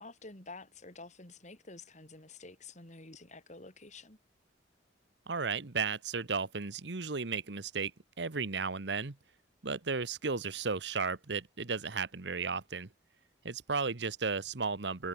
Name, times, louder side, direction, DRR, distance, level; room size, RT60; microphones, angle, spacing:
voice 1, 0.0-4.2, left 3 dB, 40° left, 4.8 m, -50 dB
voice 2, 5.3-7.9 8.2-9.2 9.6-12.9 13.4-15.1, right 4 dB, 70° right, 1.2 m, -34 dB
head